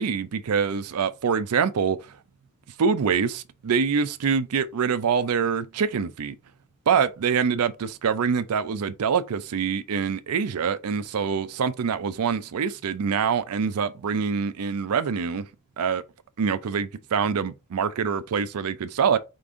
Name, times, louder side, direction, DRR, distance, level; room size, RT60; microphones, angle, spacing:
voice 1, 0.0-2.0 2.8-6.3 6.9-15.5 15.8-16.0 16.4-19.2, right 6 dB, 90° right, 0.5 m, -25 dB
5.1 x 2.5 x 3.6 m
head